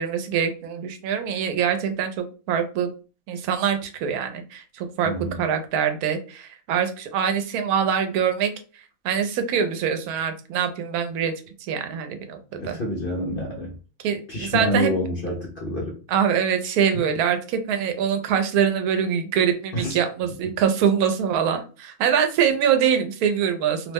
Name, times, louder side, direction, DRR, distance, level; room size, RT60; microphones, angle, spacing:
voice 1, 0.0-2.9 3.3-8.5 9.0-11.3 11.7-12.4 12.6-12.8 14.0-14.9 16.1-23.9, right 8 dB, 85° right, 7 dB, 1.1 m, -24 dB
voice 2, 5.0-5.4 12.6-13.7 14.3-16.0 19.7-20.0, left 1 dB, 55° left, -1 dB, 0.6 m, -27 dB
2.7 x 2.1 x 3.3 m, 0.36 s
omnidirectional pair, 1.5 m